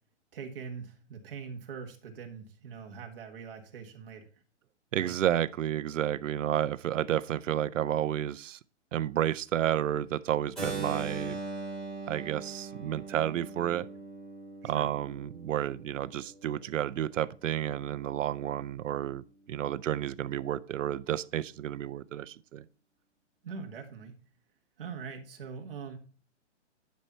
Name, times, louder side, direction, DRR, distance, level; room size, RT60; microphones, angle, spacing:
voice 1, 0.3-4.3 5.0-5.2 14.6-14.9 23.4-24.2 24.8-26.0, right 6 dB, 50° right, 1.8 m, -42 dB
voice 2, 4.9-8.6 8.9-11.4 12.1-13.9 14.6-22.6, right 11 dB, 90° right, 0.6 m, -31 dB
Keyboard (musical), 10.6-16.4, right 3 dB, ahead, 2.4 m, -40 dB
10.5 x 5.6 x 4.4 m
hypercardioid pair, 175°, 37 cm